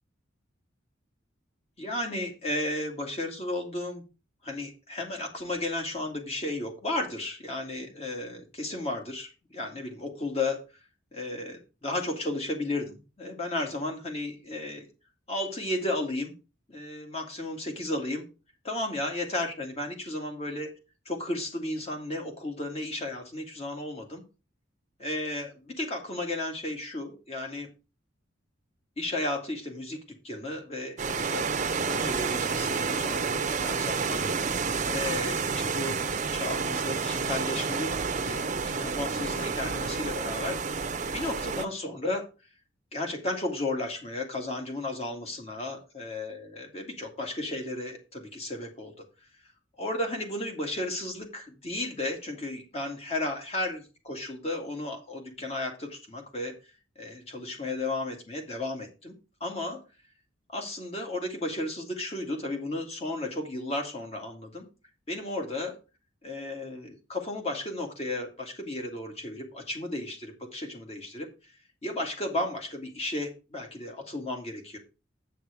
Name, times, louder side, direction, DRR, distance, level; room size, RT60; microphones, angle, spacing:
voice 1, 1.8-4.0 4.4-10.6 11.1-14.9 15.3-16.3 16.7-18.2 18.6-20.7 21.1-24.2 25.0-27.7 29.0-30.0 30.2-34.6 34.9-36.0 36.3-40.8 41.1-42.3 42.9-49.1 49.8-56.6 57.0-59.8 60.5-64.7 65.1-65.8 66.2-71.3 71.8-74.8, left 2 dB, 35° left, 3 dB, 2.2 m, -34 dB
sound 1, 31.0-41.6, right 5 dB, 40° right, 0.8 m, -30 dB
8.6 x 5.9 x 5.1 m, 0.31 s
head